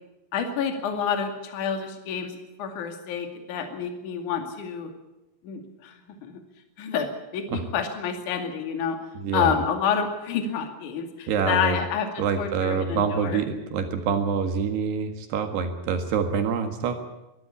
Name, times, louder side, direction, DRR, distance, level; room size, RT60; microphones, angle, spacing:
voice 1, 0.3-4.9 5.4-6.4 6.8-9.0 9.3-13.4, left 7 dB, 50° left, 5 dB, 3.3 m, -29 dB
voice 2, 9.2-9.6 11.3-11.8 12.2-17.0, right 6 dB, 65° right, 6 dB, 3.6 m, -26 dB
22.5 x 13.5 x 10.0 m, 0.97 s
omnidirectional pair, 5.3 m